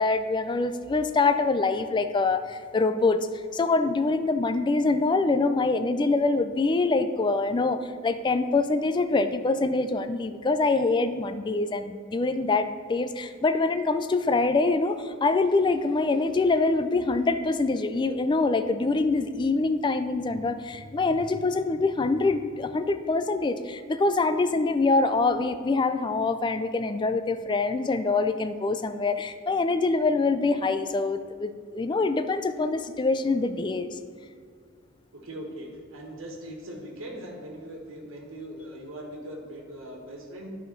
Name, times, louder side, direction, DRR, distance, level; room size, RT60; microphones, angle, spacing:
voice 1, 0.0-3.2 3.5-33.9, left 3 dB, 25° left, 11 dB, 0.3 m, -25 dB
voice 2, 35.1-40.5, right 1 dB, 85° right, 1 dB, 1.6 m, -40 dB
11.5 x 5.0 x 4.5 m, 2.1 s
head